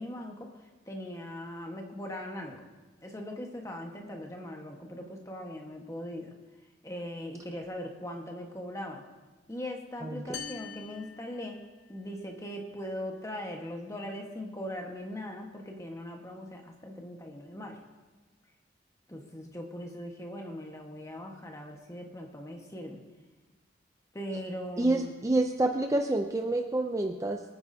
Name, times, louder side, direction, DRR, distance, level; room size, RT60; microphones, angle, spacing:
voice 1, 0.0-2.6 3.0-6.3 6.8-9.0 9.5-11.6 11.9-17.8 19.1-23.0 24.1-25.1, left 1 dB, 15° left, 2 dB, 1.3 m, -40 dB
sound 1, 10.3-12.1, left 6 dB, 65° left, 0.8 m, -44 dB
voice 2, 24.8-27.4, right 2 dB, 15° right, 4 dB, 0.5 m, -28 dB
23.5 x 9.6 x 2.7 m, 1.2 s
head